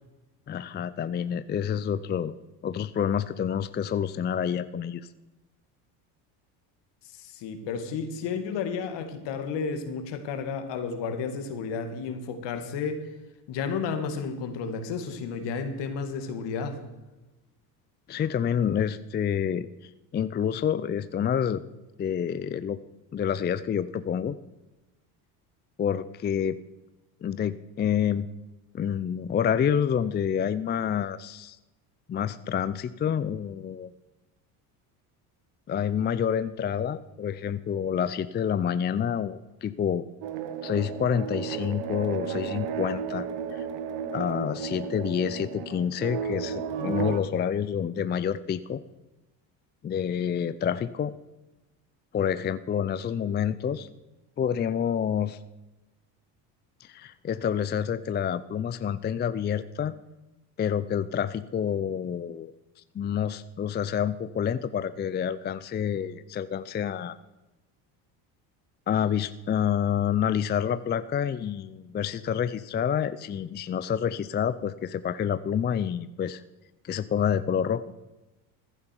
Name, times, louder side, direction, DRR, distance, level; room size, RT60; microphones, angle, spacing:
voice 1, 0.5-2.3 2.6-5.0 18.1-19.7 20.1-21.6 22.0-22.8 23.1-24.4 25.8-26.6 27.2-28.3 28.7-31.6 32.1-33.9 35.7-40.0 40.6-43.7 44.1-48.8 49.8-51.1 52.1-53.9 54.4-55.4 56.8-59.9 60.6-62.5 62.9-67.2 68.9-76.4 76.8-77.8, left 8 dB, 25° left, 14 dB, 0.4 m, -28 dB
voice 2, 7.0-13.0 13.5-16.8, left 5 dB, 65° left, 7 dB, 2.2 m, -32 dB
sound 1, 40.2-47.2, right 7 dB, 70° right, 1.4 m, -33 dB
15.0 x 11.0 x 4.6 m, 1.1 s
supercardioid pair, 85°, 46 cm